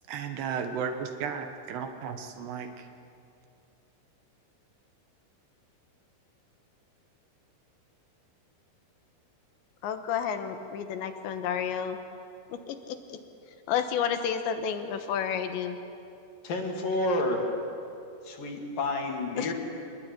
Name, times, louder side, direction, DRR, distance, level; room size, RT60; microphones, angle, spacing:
voice 1, 0.1-2.9, right 6 dB, 70° right, 7 dB, 3.3 m, -34 dB
voice 2, 9.8-12.0 12.5-13.2 13.7-15.8 19.4-19.5, left 8 dB, 80° left, 7 dB, 3.6 m, -31 dB
voice 3, 16.4-17.4 18.2-19.5, left 2 dB, 55° left, 2 dB, 3.9 m, -29 dB
26.0 x 20.5 x 9.6 m, 2.7 s
omnidirectional pair, 5.2 m